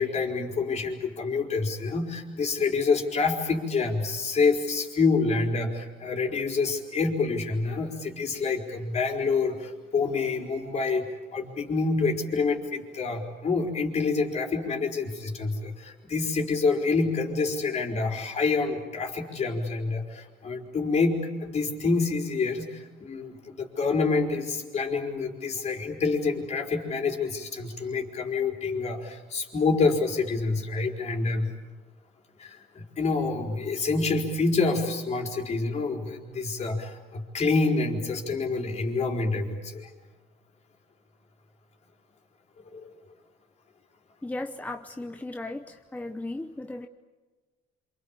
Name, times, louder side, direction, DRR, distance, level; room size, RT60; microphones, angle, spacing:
voice 1, 0.0-31.5 32.4-39.9 42.7-42.9, left 4 dB, 40° left, 2 dB, 4.6 m, -27 dB
voice 2, 44.2-46.9, left 2 dB, 10° left, 6 dB, 0.9 m, -36 dB
27.5 x 26.5 x 7.4 m, 1.3 s
cardioid pair, 110°, 17 cm